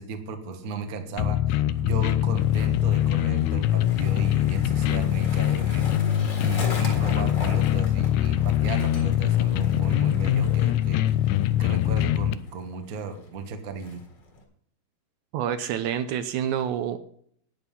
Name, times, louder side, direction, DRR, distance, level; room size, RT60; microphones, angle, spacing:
voice 1, 0.0-11.1 11.6-14.0, right 4 dB, 50° right, 6 dB, 1.0 m, -35 dB
sound 1, 1.2-12.3, left 12 dB, 80° left, 1.8 m, -23 dB
Skateboard, 1.7-14.4, left 2 dB, 40° left, 2.2 m, -41 dB
voice 2, 15.3-17.0, right 9 dB, 75° right, 11 dB, 1.9 m, -27 dB
10.5 x 9.2 x 5.5 m, 0.64 s
omnidirectional pair, 3.8 m